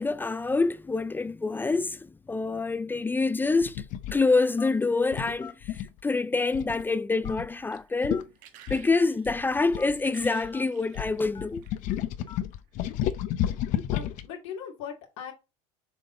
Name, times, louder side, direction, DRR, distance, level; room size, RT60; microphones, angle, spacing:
voice 1, 0.0-3.8 4.1-8.3 8.7-11.6, left 3 dB, 15° left, 0.4 m, -26 dB
sound 1, 3.6-4.2 5.1-6.0 6.5-6.8 7.2-7.5 7.8-7.9 8.0-8.2 8.7-10.5 11.0-14.3, left 11 dB, 60° left, 0.8 m, -31 dB
Telephone, 4.6-4.9 5.4-5.6 6.4-6.8 7.2-7.4 8.1-8.3 8.9-9.1 9.7-9.9 10.5-10.6 11.3-11.6 12.3-12.5, left 6 dB, 30° left, 1.1 m, -44 dB
sound 2, 7.3-11.9 12.7-12.9, right 11 dB, 65° right, 1.2 m, -54 dB
voice 2, 13.9-15.3, left 8 dB, 80° left, 2.5 m, -39 dB
7.0 x 3.9 x 3.9 m
supercardioid pair, 100°, 15 cm